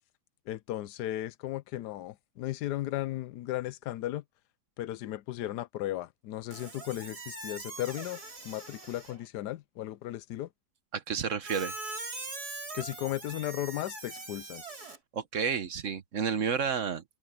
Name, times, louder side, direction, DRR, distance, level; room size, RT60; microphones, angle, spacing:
voice 1, 0.5-4.2 4.8-8.2 8.4-10.5 12.7-14.6, left 14 dB, 85° left, 1.2 m, -35 dB
Squeak, 6.5-9.3 11.4-15.0, right 2 dB, 70° right, 4.8 m, -42 dB
voice 2, 10.9-11.7 15.1-17.0, right 6 dB, 55° right, 1.3 m, -31 dB
omnidirectional pair, 1.7 m